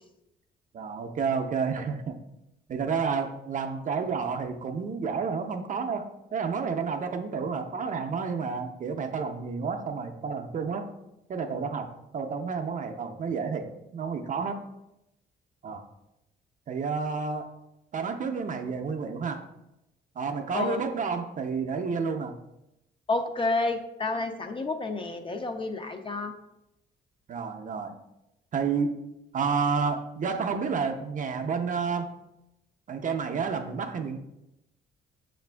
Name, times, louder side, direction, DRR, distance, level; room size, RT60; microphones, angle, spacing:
voice 1, 0.7-2.2 2.7-6.1 6.3-10.9 11.3-11.9 12.1-13.7 13.9-14.6 15.6-15.8 16.7-17.4 17.9-19.4 20.2-22.4 27.3-28.0 28.5-28.9 29.3-32.1 32.9-34.2, right 5 dB, 40° right, 5 dB, 0.4 m, -30 dB
voice 2, 20.5-20.9 23.1-26.3, left 3 dB, 25° left, 6 dB, 0.4 m, -30 dB
6.6 x 2.5 x 2.2 m, 0.88 s
cardioid pair, 90°, 20 cm